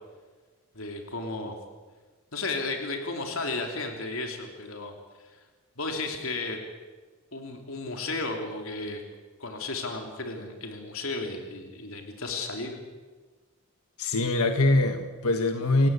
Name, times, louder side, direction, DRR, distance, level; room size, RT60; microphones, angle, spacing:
voice 1, 0.7-1.6 2.3-4.9 5.2-5.4 5.8-6.6 7.3-9.0 9.4-12.8, left 3 dB, 70° left, 3 dB, 3.2 m, -33 dB
voice 2, 14.0-15.9, left 2 dB, 90° left, 6 dB, 1.6 m, -23 dB
29.5 x 17.0 x 8.3 m, 1.4 s
head